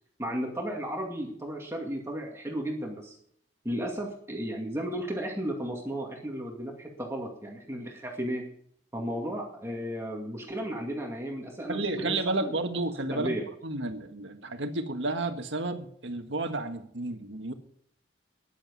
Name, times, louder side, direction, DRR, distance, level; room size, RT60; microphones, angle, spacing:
voice 1, 0.2-3.2 3.6-8.4 8.9-12.5 13.1-13.4, equal, 15° right, 2.2 m, -34 dB
voice 2, 11.7-13.4 13.6-17.5, right 2 dB, 80° right, 1.7 m, -31 dB
14.0 x 10.5 x 5.4 m
head